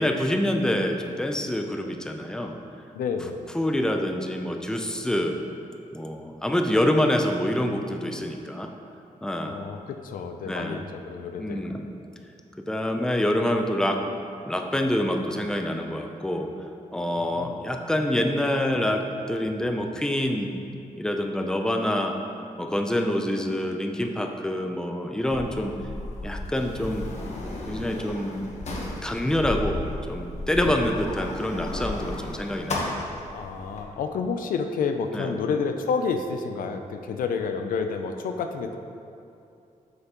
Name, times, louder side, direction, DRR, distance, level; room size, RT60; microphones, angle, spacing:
voice 1, 0.0-2.6 3.5-5.4 5.9-8.7 9.2-9.6 10.4-10.8 11.4-11.9 12.6-14.0 14.4-16.5 16.9-20.5 21.0-22.2 22.6-25.7 26.2-27.1 27.7-28.5 29.0-29.8 30.1-32.9 35.1-35.3, left 1 dB, 5° left, 3 dB, 0.5 m, -26 dB
voice 2, 2.9-3.4 9.5-11.6 17.2-17.6 30.6-30.7 33.3-38.8, left 5 dB, 85° left, 6 dB, 0.5 m, -29 dB
Sliding door, 25.2-33.8, left 2 dB, 55° left, 1.1 m, -34 dB
7.6 x 5.5 x 3.0 m, 2.6 s
cardioid pair, 80°, 14 cm